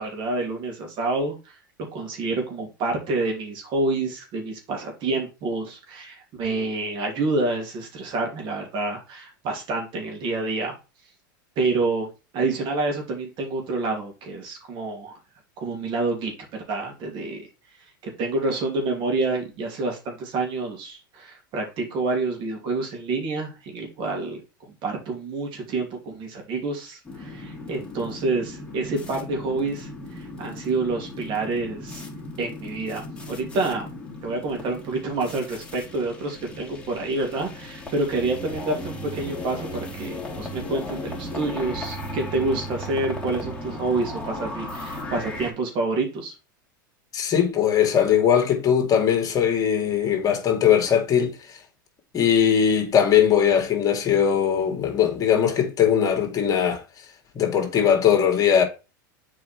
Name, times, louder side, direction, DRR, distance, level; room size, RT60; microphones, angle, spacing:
voice 1, 0.0-1.6 1.9-10.7 11.6-15.2 15.6-17.4 18.0-32.0 32.4-33.0 33.3-33.9 34.2-46.3, right 3 dB, 50° right, 3.0 m, -28 dB
sound 1, 27.0-45.5, left 1 dB, 10° left, 2.9 m, -36 dB
voice 2, 47.1-51.6 52.1-56.8 57.4-58.6, left 8 dB, 35° left, 2.2 m, -20 dB
7.5 x 4.8 x 4.6 m
hypercardioid pair, 105°, 11 cm